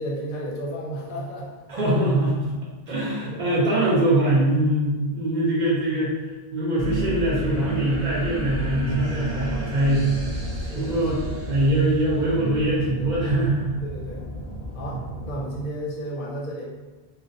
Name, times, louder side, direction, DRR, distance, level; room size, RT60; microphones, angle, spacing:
voice 1, 0.0-1.6 3.2-3.4 10.5-11.4 13.8-14.2 14.7-16.6, equal, 65° left, -4 dB, 0.7 m, -33 dB
voice 2, 1.7-2.6 2.9-6.1 6.5-10.1 10.7-11.2 11.5-13.8 14.9-15.0, right 1 dB, 55° right, -5 dB, 0.6 m, -22 dB
sound 1, 6.8-15.6, right 1 dB, 75° right, 1.1 m, -32 dB
2.4 x 2.1 x 2.5 m, 1.2 s
omnidirectional pair, 1.0 m